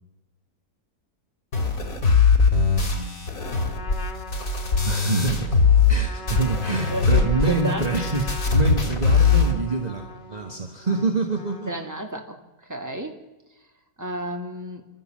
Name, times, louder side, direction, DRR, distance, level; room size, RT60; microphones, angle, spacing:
sound 1, 1.5-6.0 6.3-9.5, left 5 dB, 60° left, 3.1 m, -21 dB
voice 1, 2.6-3.3 4.9-5.6 5.9-11.7, right 3 dB, 25° right, 3 dB, 1.7 m, -27 dB
Trumpet, 3.4-12.1, left 2 dB, 45° left, 2.1 m, -40 dB
voice 2, 6.9-7.9 11.6-12.4 12.7-13.2 14.0-14.9, right 1 dB, 10° right, 2 dB, 2.3 m, -31 dB
27.0 x 13.5 x 7.5 m, 1.1 s
omnidirectional pair, 1.6 m